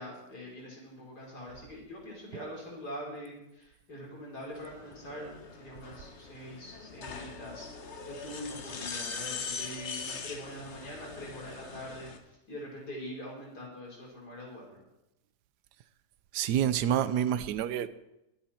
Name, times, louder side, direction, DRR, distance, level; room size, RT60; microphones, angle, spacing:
voice 1, 0.0-5.3 5.6-7.7 8.1-12.1 12.5-14.8, equal, 70° left, -3 dB, 5.2 m, -43 dB
sound 1, 4.5-12.2, left 5 dB, 45° left, 1.3 m, -42 dB
voice 2, 16.3-17.9, right 10 dB, 80° right, 13 dB, 1.3 m, -28 dB
22.5 x 8.3 x 4.4 m, 0.88 s
omnidirectional pair, 1.8 m